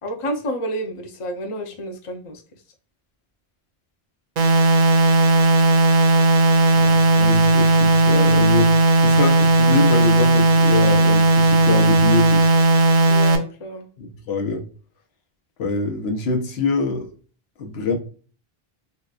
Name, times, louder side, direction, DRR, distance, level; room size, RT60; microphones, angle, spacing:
voice 1, 0.0-2.4 13.1-13.9, right 1 dB, 35° left, 0.6 m, -30 dB
sound 1, 4.4-13.4, right 2 dB, 50° right, 0.6 m, -16 dB
voice 2, 6.7-8.8 9.0-12.5 14.0-14.6 15.6-17.1 17.6-18.0, left 3 dB, 85° left, 1.0 m, -24 dB
3.9 x 2.2 x 2.3 m
omnidirectional pair, 1.0 m